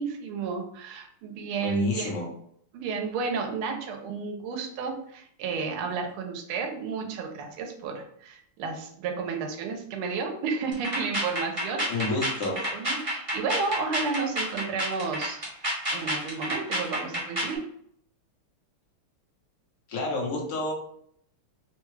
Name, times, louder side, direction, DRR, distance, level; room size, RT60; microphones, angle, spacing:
voice 1, 0.0-2.2 2.7-12.2 12.4-15.4 15.9-17.6, right 5 dB, 80° right, 4 dB, 1.5 m, -32 dB
voice 2, 1.6-2.3 11.9-12.6 19.9-20.7, left 3 dB, 55° left, -2 dB, 0.9 m, -29 dB
sound 1, 10.7-17.6, equal, 40° right, 0.4 m, -30 dB
3.6 x 2.3 x 3.1 m, 0.67 s
omnidirectional pair, 2.4 m